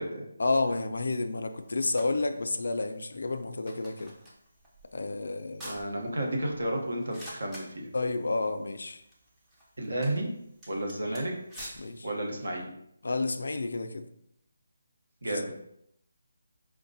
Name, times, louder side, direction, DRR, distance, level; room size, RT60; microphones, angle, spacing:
voice 1, 0.4-4.2 4.9-5.8 7.9-9.0 11.0-11.2 11.8-12.1 13.0-14.1 15.2-15.5, left 3 dB, 70° left, 7 dB, 0.3 m, -31 dB
sound 1, 1.1-12.6, equal, 5° right, 0.4 m, -51 dB
voice 2, 5.6-7.7 9.8-10.3 10.7-11.3 12.0-12.7 15.2-15.5, right 1 dB, 90° right, 1 dB, 0.9 m, -32 dB
4.7 x 2.1 x 2.7 m, 0.76 s
hypercardioid pair, 175°, 0 cm